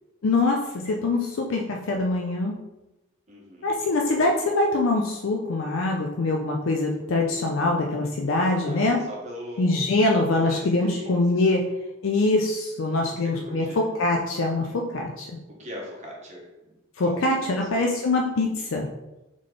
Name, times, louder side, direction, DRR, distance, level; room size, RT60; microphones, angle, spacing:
voice 1, 0.2-2.6 3.6-9.0 9.6-11.7 12.0-15.4 17.0-18.9, left 2 dB, 90° left, 1 dB, 0.5 m, -24 dB
voice 2, 3.3-3.8 8.4-9.8 10.3-11.4 13.0-13.9 15.5-16.7 17.1-17.3, left 1 dB, 35° right, -3 dB, 1.2 m, -40 dB
3.7 x 3.2 x 3.8 m, 0.95 s
head